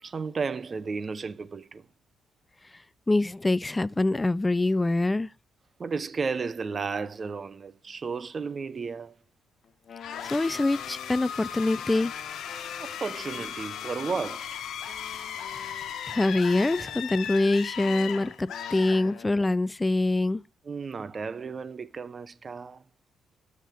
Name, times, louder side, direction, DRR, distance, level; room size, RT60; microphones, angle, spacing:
voice 1, 0.0-1.9 5.8-9.2 12.8-14.6 20.6-22.8, right 5 dB, 40° right, 0.5 m, -33 dB
voice 2, 3.1-5.3 10.2-12.1 15.5-20.4, left 2 dB, 15° left, 0.3 m, -25 dB
Wind instrument woodwind instrument, 9.6-14.4 14.9-19.6, left 6 dB, 55° left, 1.0 m, -49 dB
sound 1, 10.0-19.6, left 9 dB, 75° left, 1.2 m, -37 dB
12.0 x 5.9 x 3.5 m
cardioid pair, 90°, 0 cm